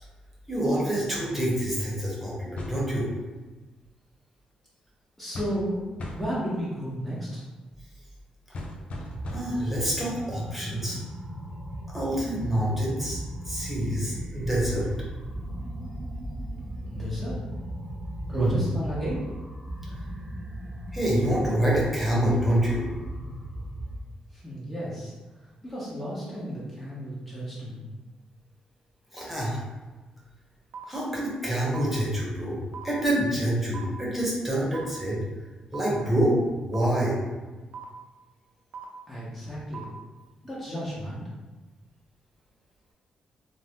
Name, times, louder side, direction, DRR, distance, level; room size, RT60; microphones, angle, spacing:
voice 1, 0.5-3.1 9.3-11.0 11.9-14.9 18.3-18.6 20.9-22.9 29.1-29.6 30.9-32.6 32.8-35.2 35.7-37.2, right 1 dB, 10° right, -5 dB, 1.1 m, -26 dB
sound 1, 2.6-2.9 5.3-5.7 6.0-6.4 8.5-9.7, left 1 dB, 60° left, 0.4 m, -37 dB
voice 2, 5.2-5.8 6.1-7.4 16.9-17.4 18.3-19.3 24.3-25.1 25.6-27.9 39.1-39.8 40.4-41.2, equal, 10° left, -9 dB, 0.9 m, -33 dB
sound 2, 9.0-24.0, right 1 dB, 30° right, 0.9 m, -37 dB
sound 3, 30.7-30.8 31.7-31.8 32.7-32.8 33.7-33.8 34.7-34.8 35.7-35.8 36.7-36.8 37.7-37.8 38.7-38.8 39.7-39.8, right 7 dB, 65° right, 0.5 m, -39 dB
2.6 x 2.1 x 3.5 m, 1.2 s
cardioid pair, 65°, 2 cm